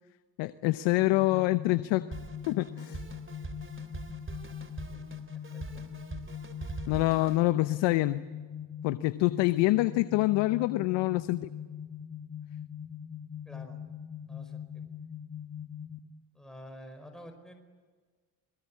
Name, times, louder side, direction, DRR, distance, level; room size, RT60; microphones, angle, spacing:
voice 1, 0.4-2.1 2.5-3.0 6.9-8.2 8.8-11.5, left 18 dB, 85° left, 14 dB, 0.8 m, -26 dB
sound 1, 1.0-16.0, left 8 dB, 35° left, 2.5 m, -42 dB
Drum kit, 2.1-7.5, right 4 dB, 30° right, 3.0 m, -43 dB
voice 2, 5.3-5.8 13.4-13.8 14.3-14.6 16.3-17.6, equal, ahead, 5 dB, 5.1 m, -49 dB
27.0 x 21.5 x 8.6 m, 1.5 s
supercardioid pair, 65°, 43 cm